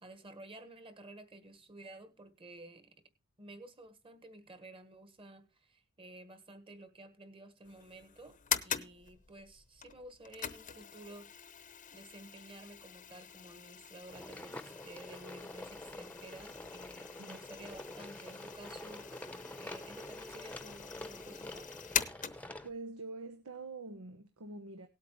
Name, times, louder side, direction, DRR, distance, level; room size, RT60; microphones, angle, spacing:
voice 1, 0.0-3.0 3.4-8.4 8.6-11.3 11.9-19.1 19.6-21.7, right 1 dB, 25° right, 1.6 m, -52 dB
sound 1, 7.6-22.8, left 9 dB, 35° left, 0.8 m, -43 dB
sound 2, 14.1-22.7, left 1 dB, 5° left, 0.9 m, -47 dB
voice 2, 22.6-24.9, right 3 dB, 80° right, 1.1 m, -45 dB
18.0 x 8.4 x 3.2 m
head